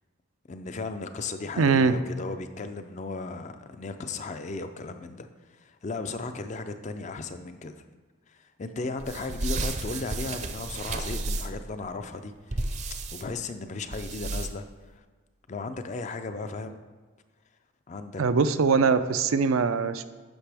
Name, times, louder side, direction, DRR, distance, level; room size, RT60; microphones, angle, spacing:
voice 1, 0.5-7.8 8.3-12.7 13.1-15.0 15.5-16.8 17.9-18.2, left 3 dB, 35° left, 9 dB, 0.4 m, -36 dB
voice 2, 1.6-2.0 18.2-20.0, right 5 dB, 85° right, 11 dB, 0.4 m, -22 dB
sound 1, 9.0-11.7 12.5-13.2 13.9-14.7, right 2 dB, 35° right, 0.5 m, -32 dB
10.5 x 5.8 x 3.4 m, 1.3 s
head